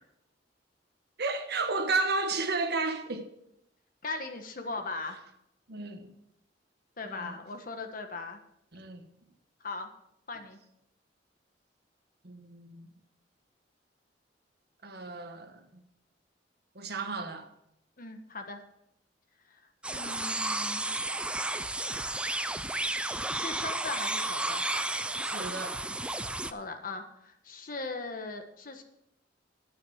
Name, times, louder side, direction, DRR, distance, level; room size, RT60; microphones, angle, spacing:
voice 1, 1.2-3.3 5.7-6.1 7.0-7.4 8.7-9.0 12.2-12.9 14.8-15.8 16.7-17.5 25.2-25.8, right 3 dB, 60° right, 1.4 m, -33 dB
voice 2, 4.0-5.2 7.0-8.4 9.6-9.9 10.3-10.6 18.0-18.6 19.5-19.6 19.9-20.9 23.3-24.7 26.4-28.8, left 3 dB, 50° left, 1.5 m, -39 dB
sound 1, 19.8-26.5, right 2 dB, 5° right, 0.4 m, -32 dB
10.5 x 9.2 x 6.4 m
head